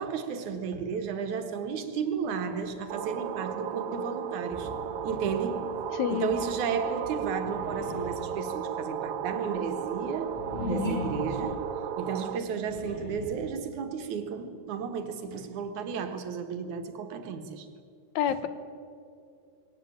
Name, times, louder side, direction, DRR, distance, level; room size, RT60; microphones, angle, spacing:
voice 1, 0.0-4.7 5.0-5.8 6.1-11.7 12.0-17.7 18.3-18.4, right 6 dB, 85° right, 3.0 m, -33 dB
sound 1, 2.1-7.4, right 2 dB, 15° right, 4.7 m, -50 dB
sound 2, 2.9-12.4, right 7 dB, 65° right, 1.6 m, -34 dB
voice 2, 6.0-6.3 18.2-18.5, left 9 dB, 75° left, 2.4 m, -27 dB
sound 3, 7.4-8.4 9.1-11.5 12.4-13.5, left 2 dB, 55° left, 5.3 m, -36 dB
21.5 x 18.0 x 8.8 m
omnidirectional pair, 3.3 m